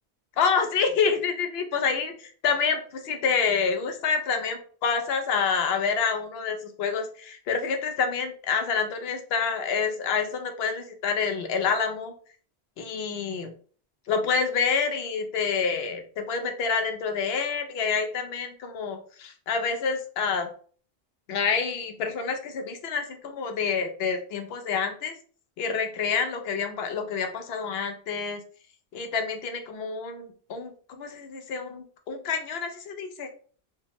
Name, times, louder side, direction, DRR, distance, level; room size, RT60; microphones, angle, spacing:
voice 1, 0.4-12.1 12.8-13.5 14.1-20.5 21.3-25.1 25.6-28.4 28.9-33.3, left 5 dB, 75° left, 6 dB, 0.8 m, -28 dB
3.4 x 2.0 x 2.7 m, 0.43 s
omnidirectional pair, 1.1 m